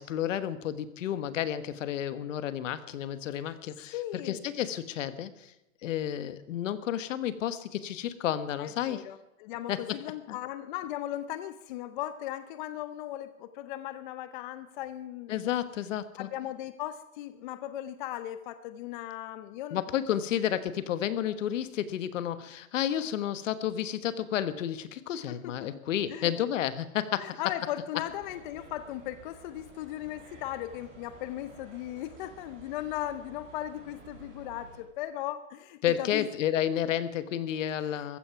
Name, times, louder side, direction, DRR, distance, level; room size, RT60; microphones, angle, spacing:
voice 1, 0.0-4.0 4.2-5.5 5.8-9.0 9.7-10.0 10.3-10.4 15.3-16.3 19.7-27.4 35.8-38.2, left 10 dB, 65° left, 13 dB, 1.4 m, -31 dB
voice 2, 3.9-4.4 8.6-15.5 16.2-19.8 23.0-23.1 25.3-25.7 26.1-26.3 27.2-36.3, left 13 dB, 35° left, 12 dB, 0.6 m, -37 dB
sound 1, 28.1-34.8, right 4 dB, 30° right, 7.1 m, -52 dB
15.0 x 14.0 x 5.9 m, 0.93 s
hypercardioid pair, 150°, 41 cm